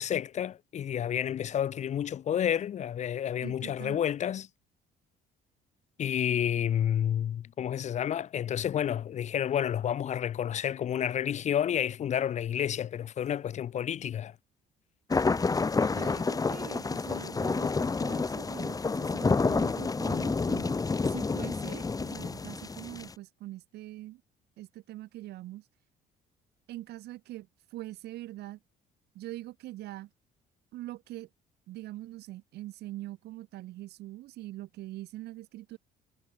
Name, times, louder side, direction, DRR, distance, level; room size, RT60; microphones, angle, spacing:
voice 1, 0.0-4.5 6.0-14.3, left 9 dB, 45° left, 0.6 m, -30 dB
voice 2, 3.4-4.0 15.9-20.7 21.0-24.2 24.6-25.6 26.7-28.6 29.2-30.1 30.7-31.3 31.7-35.8, right 16 dB, 75° right, 1.9 m, -43 dB
sound 1, 15.1-23.1, left 4 dB, 20° left, 1.6 m, -29 dB
cardioid pair, 110°, 17 cm